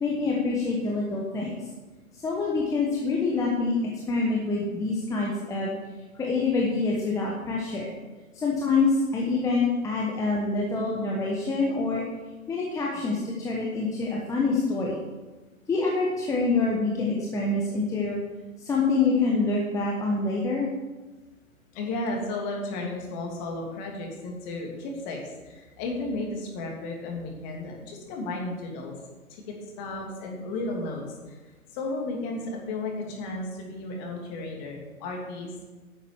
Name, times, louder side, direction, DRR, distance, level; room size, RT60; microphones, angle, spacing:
voice 1, 0.0-1.6 2.1-3.7 4.1-5.8 6.1-7.9 8.3-12.0 12.5-15.0 15.7-18.2 18.6-20.7, left 3 dB, 10° left, -3 dB, 1.0 m, -26 dB
voice 2, 21.7-28.9 29.3-31.4 31.7-35.7, left 2 dB, 30° left, 0 dB, 3.0 m, -34 dB
10.5 x 7.1 x 7.2 m, 1.2 s
figure-of-eight pair, 130°, 42 cm